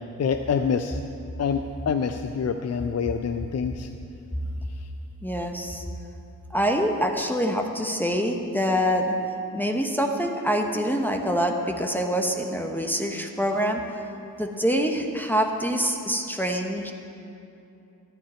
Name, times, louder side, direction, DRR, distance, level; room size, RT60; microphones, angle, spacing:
voice 1, 0.2-1.0 1.4-3.9, left 6 dB, 40° left, 8 dB, 0.5 m, -26 dB
voice 2, 5.2-5.9 6.5-9.1 9.5-13.8 14.4-16.9, equal, 5° left, 2 dB, 1.2 m, -25 dB
11.5 x 10.0 x 4.4 m, 2.7 s
supercardioid pair, 45°, 40 cm